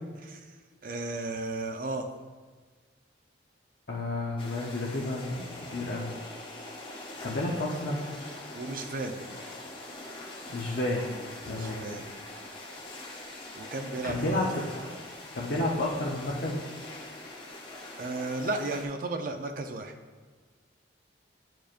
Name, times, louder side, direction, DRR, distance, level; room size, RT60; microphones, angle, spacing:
voice 1, 0.2-0.5 0.8-2.1 8.5-9.2 11.5-12.1 13.5-14.5 14.8-14.9 18.0-19.9, right 2 dB, 50° right, 5 dB, 0.6 m, -34 dB
voice 2, 3.9-6.1 7.2-8.0 10.5-11.1 11.4-11.9 14.0-14.6 15.3-16.6, left 2 dB, 60° left, -4 dB, 0.8 m, -31 dB
sound 1, 4.4-18.9, left 2 dB, 30° left, 0.9 m, -43 dB
10.5 x 4.6 x 2.5 m, 1.4 s
head